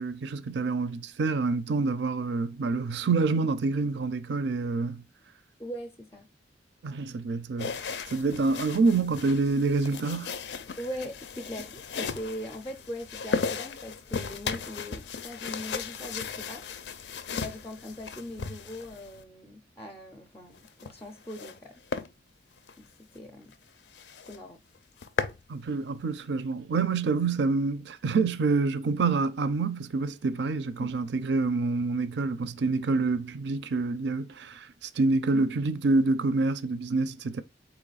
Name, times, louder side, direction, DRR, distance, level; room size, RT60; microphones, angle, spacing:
voice 1, 0.0-5.0 6.8-7.7 8.1-10.4 25.5-37.4, right 3 dB, 70° right, 0.4 m, -27 dB
voice 2, 5.6-6.3 10.8-16.7 17.4-21.8 22.8-23.6 24.2-24.6 30.8-31.0 35.3-35.5, equal, 15° left, 0.4 m, -40 dB
sound 1, 7.6-19.2 20.5-21.6 21.9-22.1 22.6-22.7 23.2-23.3 23.5-23.6 23.9-24.4 24.8-25.4, left 5 dB, 70° left, 0.5 m, -36 dB
4.0 x 2.9 x 3.9 m
head